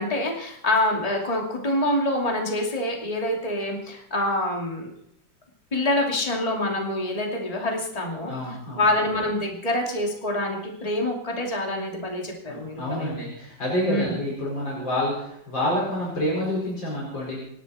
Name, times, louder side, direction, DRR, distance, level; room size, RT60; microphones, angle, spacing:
voice 1, 0.0-4.9 5.7-8.3 8.7-13.2 13.8-14.1, left 1 dB, 20° left, 0 dB, 2.6 m, -26 dB
voice 2, 8.3-8.8 12.5-17.4, left 1 dB, 70° left, -5 dB, 5.9 m, -28 dB
26.5 x 11.0 x 4.3 m, 0.75 s
omnidirectional pair, 2.1 m